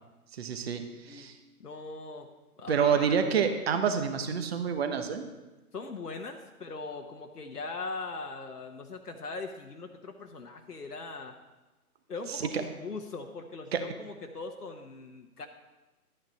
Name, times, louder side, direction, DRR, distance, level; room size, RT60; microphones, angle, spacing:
voice 1, 0.3-1.3 2.7-5.2 12.3-12.5 13.7-13.8, right 7 dB, 45° right, 7 dB, 1.0 m, -28 dB
voice 2, 1.6-2.3 2.6-3.1 5.7-11.3 12.1-15.5, left 3 dB, 90° left, 3 dB, 1.2 m, -40 dB
12.0 x 8.9 x 4.1 m, 1.1 s
figure-of-eight pair, 140°, 45 cm